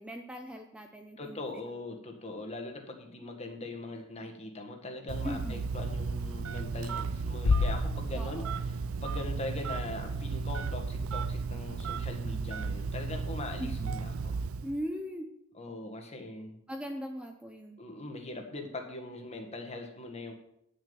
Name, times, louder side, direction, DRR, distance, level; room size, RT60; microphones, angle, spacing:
voice 1, 0.0-1.5 5.2-5.7 8.1-8.5 13.6-13.9 14.6-15.3 16.7-17.8, equal, 5° right, 4 dB, 0.7 m, -39 dB
voice 2, 1.2-14.4 15.5-16.6 17.8-20.3, left 2 dB, 30° left, 3 dB, 1.7 m, -41 dB
Telephone, 5.1-14.8, right 4 dB, 85° right, 0.4 m, -34 dB
Bass drum, 7.4-9.1, left 4 dB, 80° left, 0.5 m, -30 dB
9.9 x 6.6 x 7.0 m, 0.75 s
head